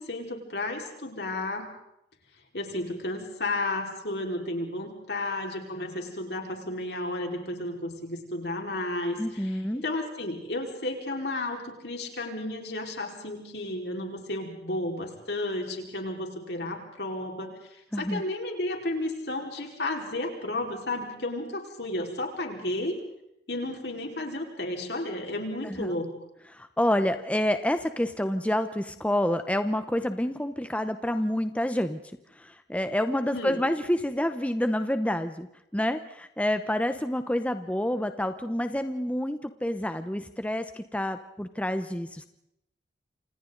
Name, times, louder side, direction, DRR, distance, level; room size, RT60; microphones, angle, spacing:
voice 1, 0.0-1.7 2.5-23.0 23.5-26.1 33.3-33.6, left 1 dB, 65° left, 2 dB, 4.8 m, -33 dB
voice 2, 9.2-9.8 17.9-18.2 25.6-25.9 26.5-32.0 32.3-35.5 35.7-42.3, left 1 dB, 10° left, 9 dB, 0.8 m, -28 dB
29.0 x 26.5 x 4.0 m, 0.81 s
head